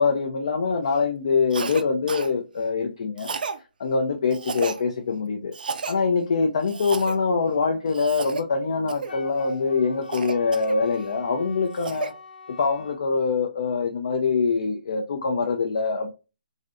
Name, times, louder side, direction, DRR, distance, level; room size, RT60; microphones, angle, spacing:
voice 1, 0.0-3.3 3.8-5.5 5.9-12.1 12.6-16.1, left 4 dB, 40° left, 0.4 m, -24 dB
Cough, 1.5-1.8 2.1-2.3 3.2-3.6 4.3-4.8 5.5-6.0 6.7-7.2 7.9-8.4 8.9-9.2 10.1-11.1 11.5-12.1, right 5 dB, 65° right, 0.4 m, -32 dB
Wind instrument woodwind instrument, 9.1-13.0, left 5 dB, 75° left, 0.8 m, -44 dB
3.1 x 2.6 x 2.5 m
hypercardioid pair, 175°, 5 cm